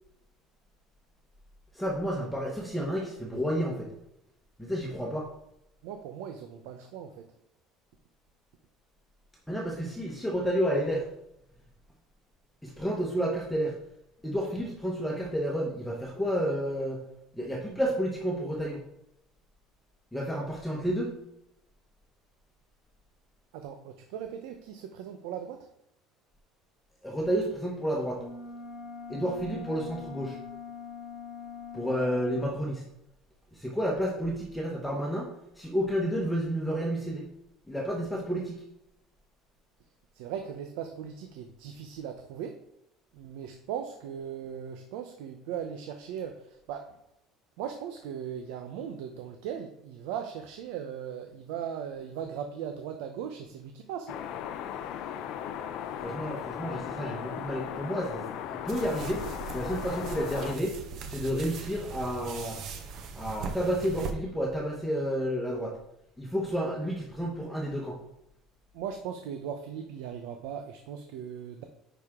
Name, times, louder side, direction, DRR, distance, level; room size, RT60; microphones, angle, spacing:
voice 1, 1.7-3.9 4.6-5.3 9.5-11.0 12.6-13.7 14.2-17.0 17.4-18.8 20.1-21.1 27.0-28.2 29.1-30.4 31.7-32.8 33.5-35.3 35.6-37.3 37.7-38.6 55.9-59.2 59.5-60.8 61.1-62.8 63.2-65.7 66.2-68.0, equal, ahead, -2 dB, 1.1 m, -30 dB
voice 2, 5.8-7.2 23.5-25.7 40.1-42.6 43.1-47.0 47.6-54.2 68.7-71.6, right 8 dB, 85° right, 6 dB, 0.8 m, -38 dB
sound 1, 28.1-32.6, left 6 dB, 25° left, 1.0 m, -43 dB
sound 2, 54.1-60.6, left 9 dB, 60° left, 0.5 m, -37 dB
sound 3, 58.7-64.1, right 5 dB, 45° right, 0.9 m, -40 dB
9.3 x 5.0 x 3.7 m, 0.80 s
cardioid pair, 160°, 0 cm